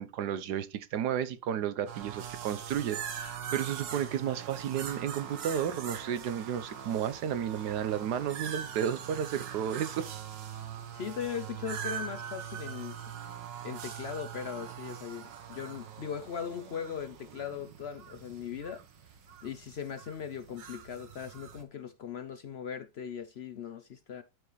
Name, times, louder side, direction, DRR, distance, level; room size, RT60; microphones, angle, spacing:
voice 1, 0.0-10.1, right 9 dB, 70° right, 1.3 m, -32 dB
sound 1, 1.9-21.6, right 8 dB, 85° right, 1.9 m, -42 dB
voice 2, 10.9-13.0 13.6-18.8 19.4-24.2, left 7 dB, 70° left, 0.6 m, -39 dB
12.5 x 5.0 x 3.1 m
omnidirectional pair, 1.9 m